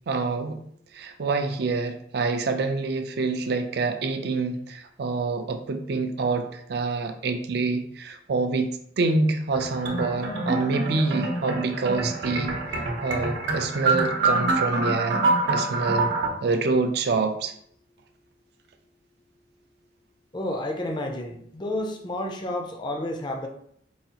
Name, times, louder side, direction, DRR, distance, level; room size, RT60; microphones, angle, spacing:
voice 1, 0.1-0.6 0.9-8.7 9.0-12.5 13.0-15.2 15.5-16.1 16.4-17.5, right 3 dB, 60° right, 7 dB, 0.4 m, -26 dB
sound 1, 9.5-16.3, right 3 dB, 85° right, 0.7 m, -26 dB
voice 2, 20.3-23.5, left 1 dB, 25° left, 3 dB, 0.4 m, -30 dB
4.7 x 2.4 x 2.8 m, 0.66 s
head